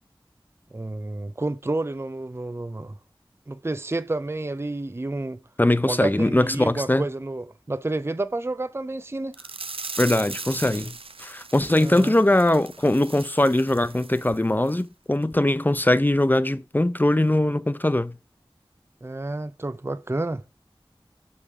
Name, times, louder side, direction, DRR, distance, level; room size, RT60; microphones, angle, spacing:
voice 1, 0.7-3.0 3.5-5.4 5.9-9.4 11.8-12.2 19.0-20.4, right 2 dB, 25° right, 0.5 m, -30 dB
voice 2, 5.6-7.0 10.0-10.9 11.2-18.2, left 1 dB, 20° left, 0.5 m, -21 dB
sound 1, 9.3-14.4 14.7-14.8 15.2-15.3, right 4 dB, 80° right, 0.6 m, -38 dB
6.6 x 5.5 x 4.7 m
wide cardioid pair, 40°, 9 cm